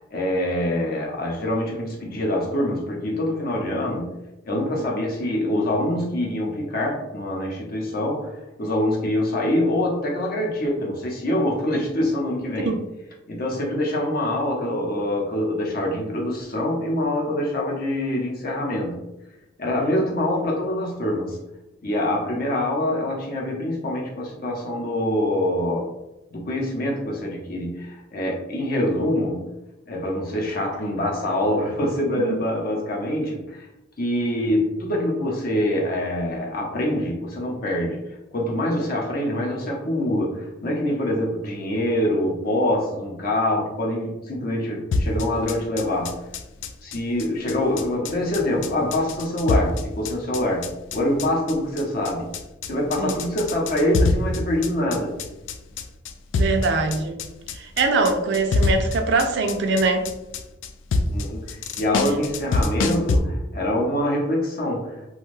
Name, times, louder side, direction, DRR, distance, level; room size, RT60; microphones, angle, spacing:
voice 1, 0.0-4.1 4.5-8.3 8.6-12.8 13.3-19.0 19.6-21.4 21.8-25.9 26.3-29.4 29.9-33.7 34.0-38.0 38.3-46.2 46.8-52.3 52.7-55.1 61.1-65.1, left 1 dB, 50° left, -1 dB, 0.7 m, -25 dB
sound 1, 44.9-63.2, left 3 dB, 75° left, 0.3 m, -26 dB
voice 2, 56.3-57.2 57.5-60.1, right 3 dB, 65° right, 5 dB, 0.4 m, -22 dB
2.5 x 2.3 x 3.1 m, 0.96 s
head